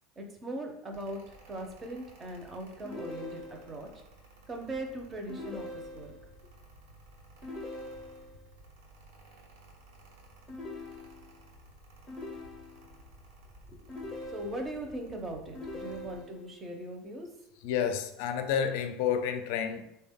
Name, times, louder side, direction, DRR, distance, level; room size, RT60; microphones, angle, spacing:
voice 1, 0.2-1.2 1.5-3.9 4.5-6.1 13.7-17.3, right 1 dB, 20° right, 3 dB, 0.5 m, -40 dB
Mechanical fan, 0.9-16.2, right 2 dB, 85° right, 0.7 m, -56 dB
sound 1, 2.8-3.9 5.3-6.3 7.4-8.5 10.5-11.5 12.1-13.0 13.9-14.9 15.5-16.6, left 2 dB, 25° left, 0.6 m, -43 dB
voice 2, 17.6-19.8, left 8 dB, 70° left, 7 dB, 0.4 m, -30 dB
3.6 x 2.2 x 3.5 m, 0.81 s
supercardioid pair, 150°, 0 cm